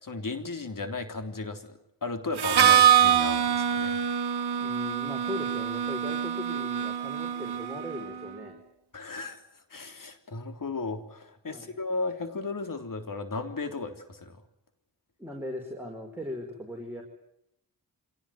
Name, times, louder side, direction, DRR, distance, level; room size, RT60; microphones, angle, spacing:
voice 1, 0.0-4.0 8.9-9.4 9.7-14.4, left 3 dB, 50° left, 7 dB, 3.6 m, -35 dB
Harmonica, 2.4-8.1, right 9 dB, 65° right, 1.5 m, -24 dB
voice 2, 4.5-8.6 11.5-11.7 15.2-17.0, left 1 dB, 5° right, 0 dB, 5.3 m, -38 dB
25.5 x 18.0 x 9.4 m, 0.80 s
cardioid pair, 45°, 42 cm